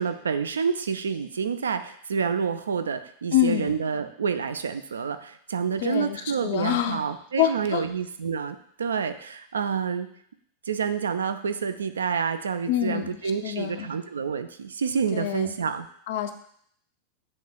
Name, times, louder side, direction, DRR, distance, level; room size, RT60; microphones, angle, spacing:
voice 1, 0.0-10.1 10.7-15.9, right 6 dB, 70° right, 9 dB, 0.3 m, -28 dB
voice 2, 3.3-3.8 5.8-7.0 7.4-7.8 12.7-13.9 15.1-15.5 16.1-16.3, left 12 dB, 55° left, 8 dB, 0.4 m, -26 dB
7.0 x 3.2 x 2.3 m, 0.66 s
figure-of-eight pair, 90°, 0 cm